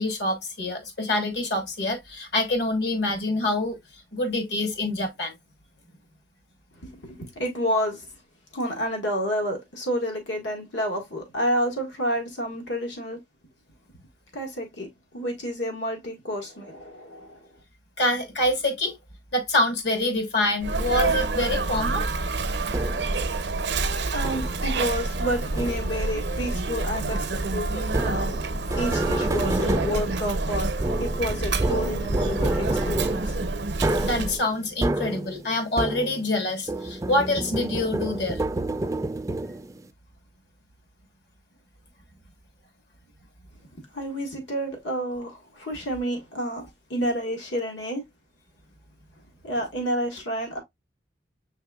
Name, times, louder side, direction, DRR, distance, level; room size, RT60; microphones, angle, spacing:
voice 1, 0.0-3.8 4.1-5.3 18.0-18.9 19.3-22.0 34.0-38.4, left 1 dB, 65° left, 1.2 m, -26 dB
voice 2, 7.0-8.0 8.5-13.2 14.3-14.9 15.1-17.4 24.1-27.2 27.5-28.4 28.7-30.7 31.0-33.3 43.9-46.6 46.9-48.0 49.4-50.6, equal, 85° left, 1.5 m, -29 dB
Sneeze, 20.6-34.4, right 3 dB, 75° right, 0.6 m, -28 dB
sound 1, 22.7-23.2 24.2-24.7 25.6-26.1 27.9-36.4 36.7-39.8, right 2 dB, 20° right, 0.3 m, -29 dB
5.7 x 3.4 x 2.2 m
head